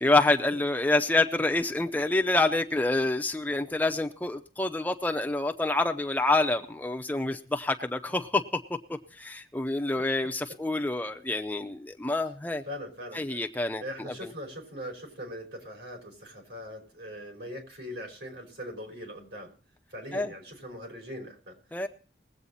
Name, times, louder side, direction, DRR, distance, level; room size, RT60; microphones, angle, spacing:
voice 1, 0.0-8.6 8.9-12.6 13.1-14.3 20.1-20.3 21.7-21.9, left 2 dB, 10° left, 4 dB, 0.6 m, -27 dB
voice 2, 12.7-13.4 13.8-19.5 19.9-21.5, equal, 75° right, 1 dB, 5.1 m, -41 dB
20.5 x 8.1 x 4.1 m, 0.39 s
head